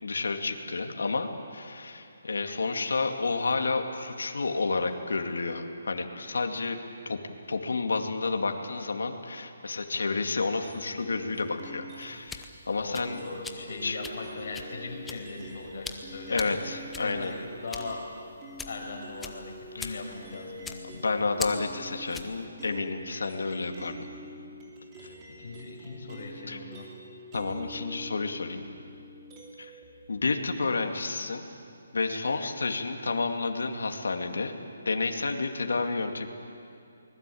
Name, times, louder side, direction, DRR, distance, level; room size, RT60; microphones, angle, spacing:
voice 1, 0.0-6.8 7.1-7.2 7.5-13.2 13.8-14.0 16.3-17.3 19.7-20.0 20.8-24.0 25.0-25.1 26.5-26.6 27.3-28.6 29.6-29.7 30.1-31.5 31.9-34.5 34.9-36.3, left 3 dB, 85° left, 4 dB, 2.4 m, -30 dB
sound 1, 10.6-12.4 13.0-18.1 18.4-29.8, equal, 15° right, 3.2 m, -46 dB
sound 2, 12.0-22.4, left 4 dB, 5° left, 0.8 m, -43 dB
voice 2, 12.8-16.5 17.0-18.0 18.6-20.8 25.4-26.9, left 3 dB, 50° left, 0 dB, 6.1 m, -39 dB
24.5 x 20.0 x 8.6 m, 2.6 s
hypercardioid pair, 170°, 0 cm